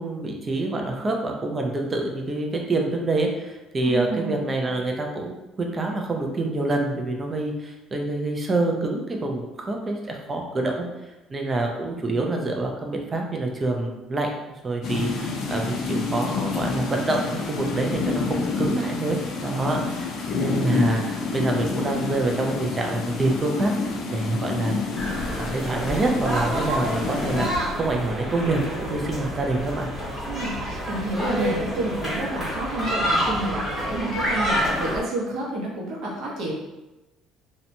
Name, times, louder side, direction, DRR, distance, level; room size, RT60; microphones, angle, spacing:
voice 1, 0.0-10.9 11.3-14.3 14.6-24.9 25.4-29.9, right 2 dB, 20° right, 1 dB, 0.3 m, -26 dB
voice 2, 3.8-4.3 19.7-19.9 30.3-36.5, right 2 dB, 55° right, -3 dB, 0.7 m, -29 dB
sound 1, 14.8-27.5, left 4 dB, 55° left, 0.4 m, -28 dB
sound 2, 24.9-35.0, equal, 15° left, 0.9 m, -28 dB
2.8 x 2.1 x 2.6 m, 1.0 s
cardioid pair, 160°, 0 cm